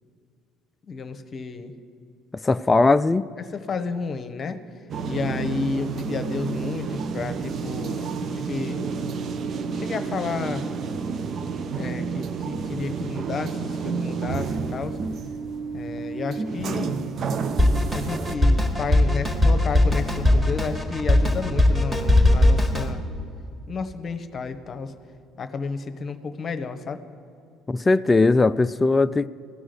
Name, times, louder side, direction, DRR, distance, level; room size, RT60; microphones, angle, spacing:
voice 1, 0.8-1.7 3.5-4.6 5.0-8.9 9.7-10.7 11.7-15.0 15.7-16.9 17.9-23.0 23.7-24.9 25.4-27.0, left 4 dB, 40° left, 9 dB, 1.0 m, -31 dB
voice 2, 2.4-3.2 27.7-29.3, left 3 dB, 20° left, 14 dB, 0.3 m, -19 dB
sound 1, 4.9-18.3, right 5 dB, 45° right, 0.7 m, -30 dB
Drum kit, 17.6-22.9, left 1 dB, 15° right, 1.8 m, -19 dB
15.5 x 6.2 x 9.8 m, 2.5 s
figure-of-eight pair, 55°, 0 cm